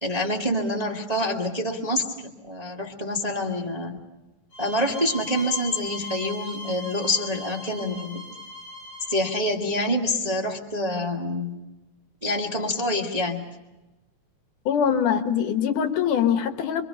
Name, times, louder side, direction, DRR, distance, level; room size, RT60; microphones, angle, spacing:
voice 1, 0.0-4.0 4.6-8.2 9.1-11.6 12.2-13.4, left 1 dB, 15° right, -1 dB, 1.4 m, -26 dB
sound 1, 4.5-9.4, left 2 dB, 45° left, 7.2 m, -39 dB
voice 2, 14.7-16.8, left 8 dB, 75° left, 7 dB, 2.8 m, -23 dB
28.0 x 23.0 x 5.6 m, 1.1 s
omnidirectional pair, 3.6 m